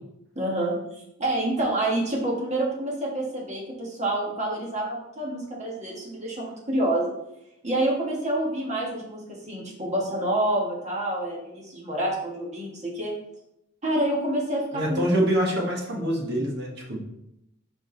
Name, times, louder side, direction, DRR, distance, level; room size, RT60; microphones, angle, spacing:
voice 1, 0.3-0.7 1.2-7.1 7.6-13.1 13.8-15.0, right 1 dB, 30° right, -3 dB, 1.7 m, -27 dB
voice 2, 14.7-17.0, equal, 50° right, -1 dB, 1.5 m, -25 dB
5.0 x 4.9 x 4.0 m, 0.82 s
head